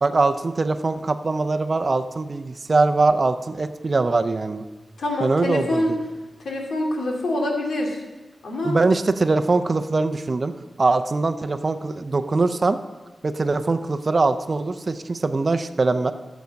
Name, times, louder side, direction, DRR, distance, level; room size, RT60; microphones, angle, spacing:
voice 1, 0.0-4.6 5.2-6.0 8.6-10.5 10.8-12.8 13.2-16.1, right 3 dB, 40° right, 10 dB, 0.6 m, -22 dB
voice 2, 5.0-5.9 6.4-8.0 8.4-8.8, left 1 dB, 85° left, 0 dB, 2.3 m, -25 dB
14.0 x 7.1 x 5.2 m, 1.2 s
wide cardioid pair, 115°, 0 cm